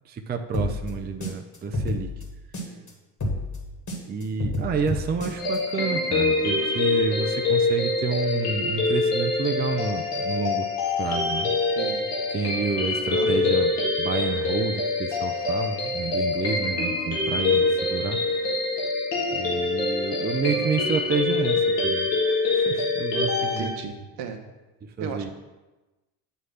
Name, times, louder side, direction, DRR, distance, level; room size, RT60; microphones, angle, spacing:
voice 1, 0.1-2.1 4.0-10.7 11.0-11.5 12.3-13.7 14.0-18.2 19.3-22.1 22.5-23.7 25.0-25.3, right 5 dB, 20° right, 5 dB, 0.5 m, -29 dB
sound 1, 0.5-2.9 3.2-5.6, left 1 dB, 40° left, 1.9 m, -30 dB
sound 2, 5.4-23.7, left 3 dB, 85° left, 1.7 m, -25 dB
voice 2, 13.1-13.5 17.5-17.7 20.5-20.7 23.4-24.4 25.0-25.3, right 7 dB, 65° right, 5 dB, 1.0 m, -36 dB
8.0 x 3.2 x 5.7 m, 1.1 s
hypercardioid pair, 70°, 47 cm